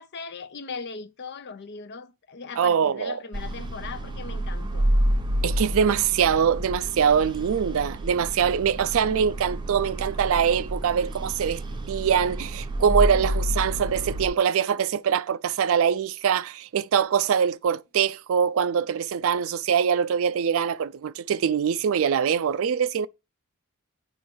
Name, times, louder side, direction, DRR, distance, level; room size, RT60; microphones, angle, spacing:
voice 1, 0.0-4.9 13.0-13.4, left 4 dB, 55° left, 0.6 m, -39 dB
voice 2, 2.6-3.2 5.4-11.6 11.9-23.1, right 7 dB, 65° right, 0.4 m, -23 dB
sound 1, 3.3-14.3, equal, 20° right, 0.7 m, -29 dB
8.7 x 3.1 x 4.6 m
head